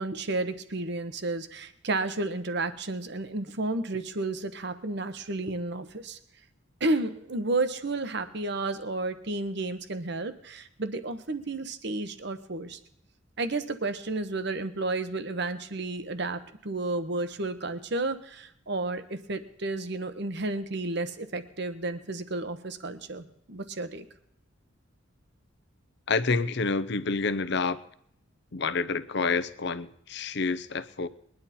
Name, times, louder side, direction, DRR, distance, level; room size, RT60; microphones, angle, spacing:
voice 1, 0.0-6.2 6.8-12.8 13.4-24.1, right 2 dB, 60° right, 11 dB, 1.1 m, -32 dB
voice 2, 26.1-27.8 28.5-31.1, left 4 dB, 60° left, 15 dB, 0.7 m, -28 dB
21.5 x 10.5 x 4.3 m, 0.73 s
head